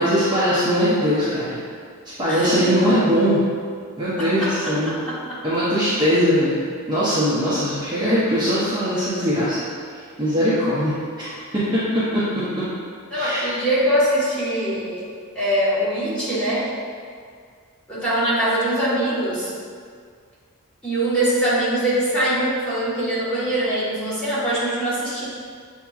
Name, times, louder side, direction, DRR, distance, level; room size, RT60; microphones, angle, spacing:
voice 1, 0.0-1.6 2.2-3.4 4.0-4.9 5.4-9.6 10.2-11.3 11.5-12.5 13.1-13.4, equal, 20° right, -12 dB, 0.7 m, -21 dB
voice 2, 2.3-2.6 4.2-5.4 13.1-15.0 15.3-16.7 17.9-19.5 20.8-25.2, right 1 dB, 5° left, -12 dB, 1.4 m, -23 dB
6.9 x 2.8 x 2.4 m, 2.1 s
head